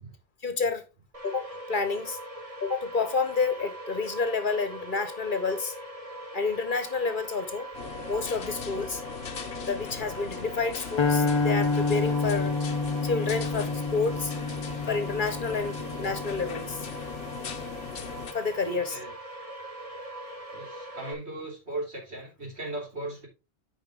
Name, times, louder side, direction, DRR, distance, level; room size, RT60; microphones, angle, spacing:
voice 1, 0.4-0.8 1.2-2.2 2.6-5.7 6.3-7.7 8.1-9.0 9.7-12.5 13.0-14.3 14.9-16.9 18.3-19.0, left 4 dB, 50° left, 1.3 m, -29 dB
sound 1, 1.1-21.1, right 1 dB, 35° right, 1.8 m, -41 dB
sound 2, 7.7-18.3, left 7 dB, 75° left, 1.1 m, -39 dB
sound 3, 11.0-17.3, left 3 dB, 35° left, 0.5 m, -29 dB
voice 2, 18.7-19.1 20.5-23.3, right 2 dB, 85° right, 3.3 m, -37 dB
9.5 x 5.1 x 3.6 m
omnidirectional pair, 1.1 m